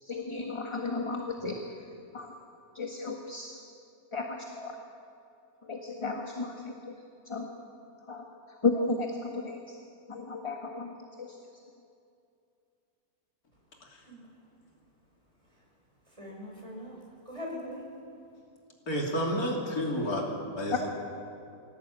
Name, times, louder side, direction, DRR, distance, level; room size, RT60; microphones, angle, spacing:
voice 1, 0.0-1.6 2.1-2.3 2.7-3.6 4.1-4.7 5.6-7.0 7.2-7.5 8.1-9.7 10.1-11.4 20.7-20.9, left 3 dB, 20° left, 2 dB, 1.5 m, -34 dB
voice 2, 14.0-14.4 15.5-15.7 16.0-17.9, left 1 dB, 20° right, -3 dB, 6.3 m, -42 dB
voice 3, 18.9-20.3 20.6-20.9, equal, 70° left, 0 dB, 3.5 m, -30 dB
24.0 x 17.5 x 8.9 m, 2.6 s
omnidirectional pair, 1.6 m